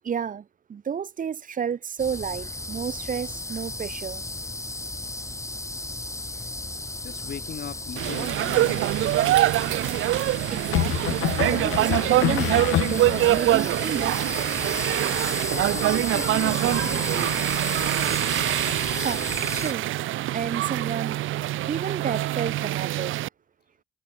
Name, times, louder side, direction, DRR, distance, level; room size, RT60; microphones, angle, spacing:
voice 1, 0.0-0.4 0.7-4.2 10.5-11.2 11.5-14.1 18.9-19.2 19.5-19.8 20.3-21.2 21.7-23.1, right 7 dB, 40° right, 1.0 m, -31 dB
sound 1, 2.0-19.7, left 2 dB, 15° left, 3.2 m, -34 dB
voice 2, 7.0-9.4 15.5-17.5, left 8 dB, 55° left, 2.8 m, -39 dB
sound 2, 8.0-23.3, right 15 dB, 85° right, 1.4 m, -24 dB
sound 3, 8.1-8.7 10.7-13.4, left 14 dB, 85° left, 2.1 m, -27 dB
cardioid pair, 90°, 20 cm